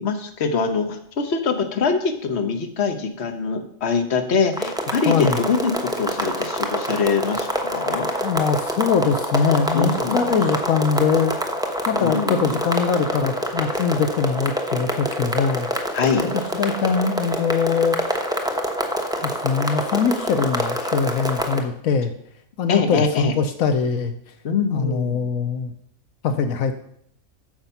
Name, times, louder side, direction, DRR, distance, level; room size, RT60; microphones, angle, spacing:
voice 1, 0.0-8.1 9.7-10.4 11.9-12.6 15.9-16.3 22.7-23.3 24.4-25.3, left 5 dB, 50° left, 6 dB, 1.3 m, -23 dB
sound 1, 4.5-21.6, equal, 5° right, 0.8 m, -26 dB
voice 2, 5.1-5.4 8.2-11.3 11.9-15.7 16.3-18.0 19.2-22.1 22.6-24.2 24.7-25.7 26.2-26.7, left 6 dB, 80° left, 8 dB, 1.2 m, -22 dB
9.8 x 6.5 x 5.7 m, 0.69 s
omnidirectional pair, 1.4 m